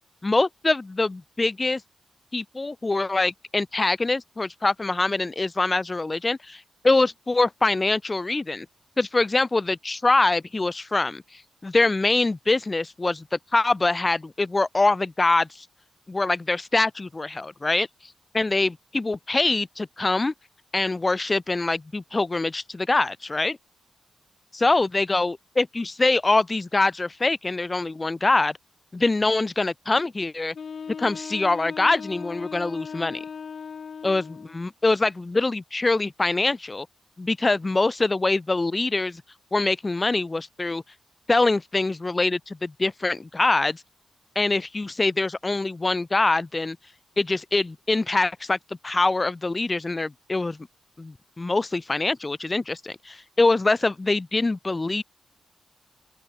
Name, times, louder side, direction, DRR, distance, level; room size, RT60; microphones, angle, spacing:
voice 1, 0.2-1.8 2.3-8.7 9.0-11.2 11.6-15.6 16.1-17.9 18.3-20.3 20.7-23.6 24.5-28.6 28.9-30.5 31.0-33.2 34.0-36.9 37.2-39.2 39.5-40.8 41.3-43.8 44.4-46.8 47.2-48.6 48.8-50.6 51.0-55.0, left 2 dB, 25° left, 0.7 m, -24 dB
Wind instrument woodwind instrument, 30.5-34.6, left 6 dB, 60° left, 2.6 m, -38 dB
open air
cardioid pair, 70°, 0 cm